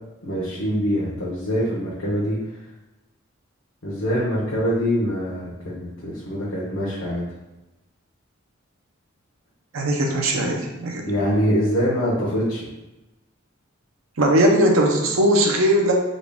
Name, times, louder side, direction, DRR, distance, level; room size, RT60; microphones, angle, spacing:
voice 1, 0.2-2.4 3.8-7.2 11.0-12.7, equal, 90° left, -9 dB, 1.0 m, -24 dB
voice 2, 9.7-11.0 14.2-15.9, right 1 dB, 80° right, 1 dB, 0.7 m, -19 dB
3.8 x 2.3 x 3.4 m, 1.0 s
head